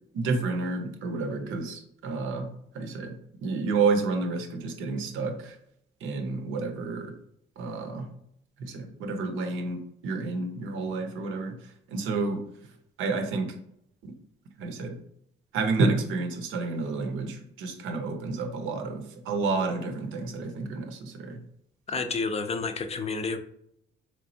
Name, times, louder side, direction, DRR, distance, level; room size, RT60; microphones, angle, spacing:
voice 1, 0.1-3.1 3.4-5.6 6.0-7.1 7.6-8.1 8.6-11.6 11.9-12.4 13.0-13.5 14.0-14.1 14.6-15.0 15.5-21.4, right 3 dB, 90° right, 5 dB, 0.6 m, -30 dB
voice 2, 21.9-23.4, left 4 dB, 30° left, 8 dB, 0.4 m, -30 dB
3.4 x 3.0 x 2.7 m, 0.72 s
cardioid pair, 90°, 20 cm